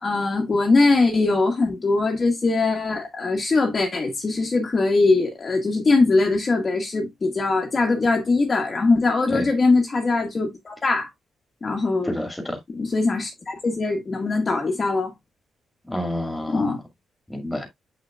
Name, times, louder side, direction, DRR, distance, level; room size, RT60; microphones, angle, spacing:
voice 1, 0.0-11.1 11.6-12.1 12.7-15.1 16.5-16.8, left 3 dB, 30° left, 1.5 m, -21 dB
voice 2, 12.0-12.6 15.9-16.8 17.3-17.7, left 1 dB, 5° left, 2.1 m, -28 dB
7.9 x 5.9 x 2.4 m
cardioid pair, 145°, 0 cm